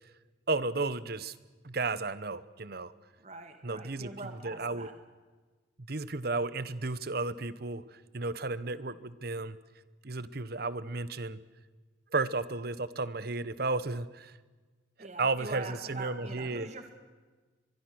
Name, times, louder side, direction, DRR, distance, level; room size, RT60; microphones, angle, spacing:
voice 1, 0.5-1.3 1.6-2.9 3.6-4.9 5.9-7.8 8.1-9.6 10.0-11.4 12.1-14.3 15.0-16.7, right 3 dB, 55° right, 16 dB, 1.0 m, -33 dB
voice 2, 3.2-4.9 15.0-16.9, right 3 dB, 40° right, 5 dB, 2.2 m, -43 dB
24.0 x 23.0 x 6.4 m, 1.3 s
head